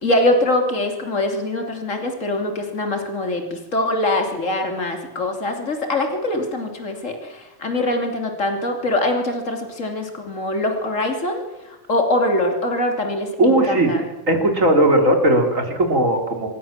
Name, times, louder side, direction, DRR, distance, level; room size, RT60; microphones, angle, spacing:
voice 1, 0.0-14.0, left 1 dB, 70° left, 4 dB, 3.4 m, -23 dB
voice 2, 13.4-13.9 14.3-16.5, right 1 dB, 80° right, 4 dB, 4.2 m, -17 dB
26.5 x 22.5 x 7.4 m, 1.1 s
omnidirectional pair, 1.4 m